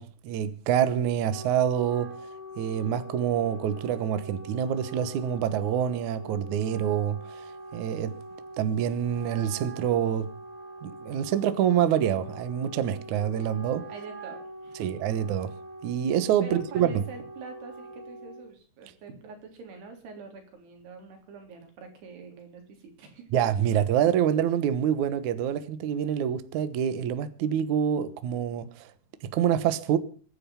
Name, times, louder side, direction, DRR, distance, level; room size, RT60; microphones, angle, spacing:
voice 1, 0.0-2.1 2.6-7.4 7.7-8.1 8.6-10.3 10.8-13.8 14.8-15.5 15.8-17.0 23.3-28.9 29.3-30.0, right 9 dB, 65° right, 2.2 m, -26 dB
Wind instrument woodwind instrument, 1.1-18.5, right 1 dB, 10° right, 2.5 m, -43 dB
voice 2, 13.9-14.9 16.4-23.3, right 4 dB, 85° right, 5.5 m, -45 dB
23.0 x 10.5 x 5.7 m
omnidirectional pair, 4.6 m